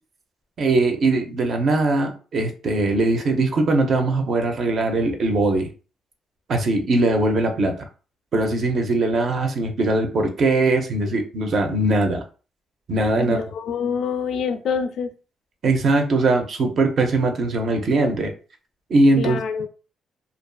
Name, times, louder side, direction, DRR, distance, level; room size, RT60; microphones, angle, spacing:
voice 1, 0.6-5.7 6.5-7.7 8.3-12.2 12.9-13.4 15.6-18.3 18.9-19.4, right 2 dB, 55° right, 4 dB, 0.6 m, -20 dB
voice 2, 13.2-15.1 19.2-19.7, left 6 dB, 70° left, 8 dB, 0.4 m, -26 dB
2.5 x 2.3 x 2.2 m, 0.35 s
cardioid pair, 90°, 0 cm